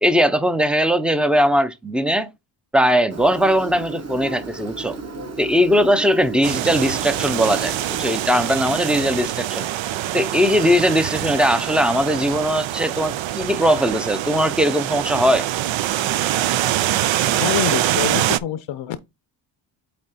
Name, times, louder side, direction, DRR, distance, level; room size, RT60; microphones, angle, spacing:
voice 1, 0.0-2.3 2.7-5.0 5.4-9.7 10.1-15.5, equal, ahead, 0.6 m, -19 dB
Engine, 3.1-8.2, right 4 dB, 35° right, 1.3 m, -34 dB
sound 1, 6.4-18.4, right 13 dB, 75° right, 0.6 m, -24 dB
voice 2, 17.4-19.0, left 10 dB, 75° left, 0.7 m, -26 dB
8.7 x 2.9 x 4.2 m
cardioid pair, 130°, 47 cm